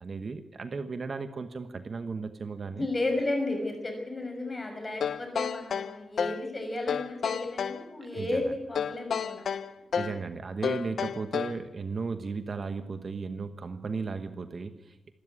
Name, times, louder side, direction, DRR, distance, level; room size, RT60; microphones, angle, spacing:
voice 1, 0.0-2.9 8.0-8.5 9.9-15.1, right 4 dB, 40° right, 9 dB, 1.1 m, -35 dB
voice 2, 2.7-9.4, left 2 dB, 20° left, 4 dB, 6.1 m, -33 dB
sound 1, 5.0-6.5 6.9-7.8 8.8-10.2 10.6-11.6, left 7 dB, 60° left, 0.8 m, -31 dB
25.5 x 13.0 x 9.8 m, 1.0 s
wide cardioid pair, 150°, 0 cm